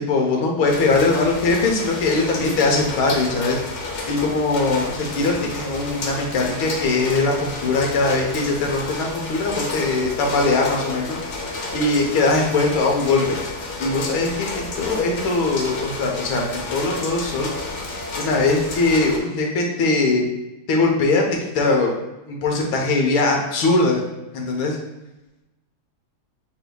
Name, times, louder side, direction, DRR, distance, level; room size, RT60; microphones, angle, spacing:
voice 1, 0.0-3.6 4.1-11.2 11.7-13.4 13.8-17.5 18.1-20.2 20.7-21.2 21.5-21.9 22.3-24.0 24.3-24.8, left 3 dB, 85° left, 0 dB, 1.7 m, -21 dB
sound 1, 0.7-19.2, left 2 dB, 65° left, 0.7 m, -31 dB
8.1 x 2.8 x 2.3 m, 0.98 s
omnidirectional pair, 2.2 m